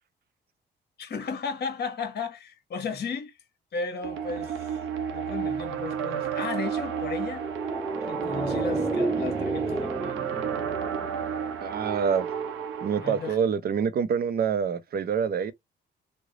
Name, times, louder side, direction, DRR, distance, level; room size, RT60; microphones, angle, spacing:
voice 1, 1.0-3.4 3.7-4.8 5.1-7.4 8.1-10.2 13.0-13.4, left 5 dB, 55° left, 1.2 m, -34 dB
sound 1, 4.0-13.4, right 7 dB, 85° right, 0.8 m, -31 dB
sound 2, 7.3-11.9 12.2-12.3, right 1 dB, 5° right, 0.3 m, -33 dB
voice 2, 11.6-12.3 12.8-15.5, right 7 dB, 50° right, 0.6 m, -26 dB
3.2 x 2.1 x 3.7 m
cardioid pair, 90°, 20 cm